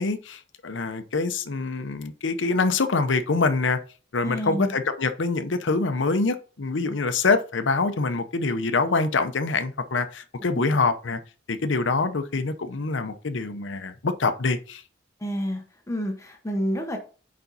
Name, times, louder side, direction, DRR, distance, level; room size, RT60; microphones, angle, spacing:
voice 1, 0.0-3.8 4.1-11.2 11.5-14.8, left 3 dB, 80° left, 0.7 m, -25 dB
voice 2, 4.2-4.7 15.2-17.0, equal, 15° left, 1.0 m, -29 dB
7.0 x 5.2 x 4.0 m
head